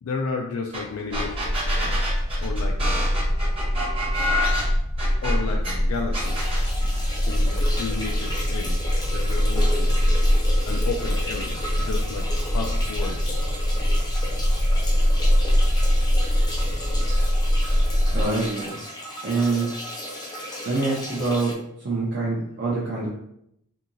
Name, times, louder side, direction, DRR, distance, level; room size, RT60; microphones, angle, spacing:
voice 1, 0.0-2.0 2.4-3.2 4.1-4.3 5.2-6.4 7.2-8.8 9.1-10.2 10.7-13.4 13.8-13.9 15.8-15.9 17.6-17.9 21.2-21.3, left 4 dB, 75° left, 1 dB, 0.3 m, -33 dB
sound 1, 0.7-0.8 1.1-5.7 6.1-6.6, left 1 dB, 25° right, 0.9 m, -28 dB
sound 2, 1.1-18.2, equal, 85° right, 0.8 m, -23 dB
sound 3, 6.2-21.5, left 1 dB, 20° left, 0.6 m, -35 dB
voice 2, 18.1-18.8 19.2-19.7 20.7-23.1, right 3 dB, 50° right, -6 dB, 0.5 m, -25 dB
2.8 x 2.7 x 2.5 m, 0.76 s
head